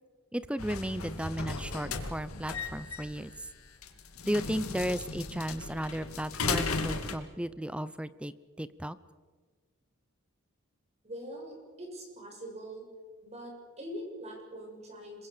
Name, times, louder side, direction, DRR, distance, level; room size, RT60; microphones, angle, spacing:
voice 1, 0.3-3.3 4.3-9.0, equal, 5° right, 15 dB, 0.7 m, -34 dB
sound 1, 0.6-7.1, left 4 dB, 90° left, 2.4 m, -36 dB
voice 2, 11.0-12.8 13.2-15.3, equal, 30° right, 1 dB, 6.9 m, -43 dB
26.5 x 22.5 x 6.9 m, 1.5 s
head